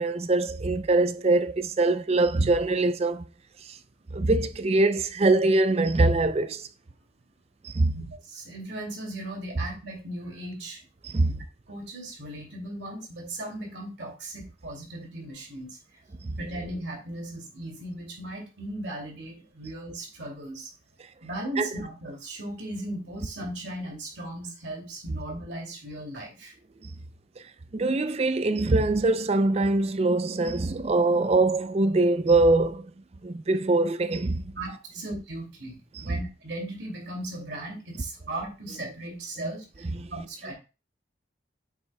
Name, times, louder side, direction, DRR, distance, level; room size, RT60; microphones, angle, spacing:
voice 1, 0.0-3.2 3.7-3.8 4.1-6.7 7.6-8.0 11.0-11.4 16.2-16.4 21.6-21.7 27.7-32.9 33.2-34.4 35.9-36.0 39.4-39.5 39.9-40.1, right 2 dB, 35° right, 0.4 m, -23 dB
voice 2, 8.1-10.8 11.2-11.4 11.7-15.8 16.4-20.7 21.2-26.5 34.6-39.8 40.1-40.5, right 1 dB, 75° right, 2.5 m, -37 dB
7.6 x 6.2 x 2.3 m
head